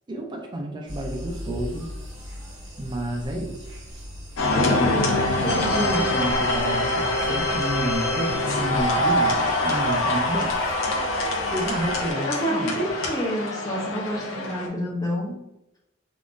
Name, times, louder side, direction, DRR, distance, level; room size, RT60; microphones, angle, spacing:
voice 1, 0.1-1.9 2.8-3.6 4.6-4.8 5.4-10.5 11.5-12.8, right 1 dB, 25° right, 1 dB, 0.3 m, -30 dB
sound 1, 0.9-12.1, equal, 75° right, 1.1 m, -39 dB
sound 2, 4.4-14.7, left 1 dB, 90° left, 0.5 m, -24 dB
voice 2, 4.5-6.1 12.3-15.4, equal, 20° left, -4 dB, 0.7 m, -28 dB
3.6 x 2.3 x 2.4 m, 0.90 s
head